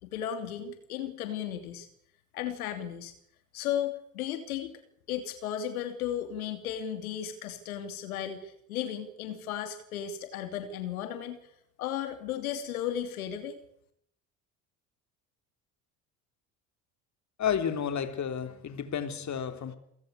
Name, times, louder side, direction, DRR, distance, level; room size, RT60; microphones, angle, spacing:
voice 1, 0.0-1.9 2.3-3.1 3.5-4.8 5.1-11.4 11.8-13.6, left 10 dB, 80° left, 2.9 m, -35 dB
voice 2, 17.4-19.8, left 8 dB, 40° left, 3.6 m, -31 dB
28.0 x 16.0 x 8.3 m
hypercardioid pair, 65°, 42 cm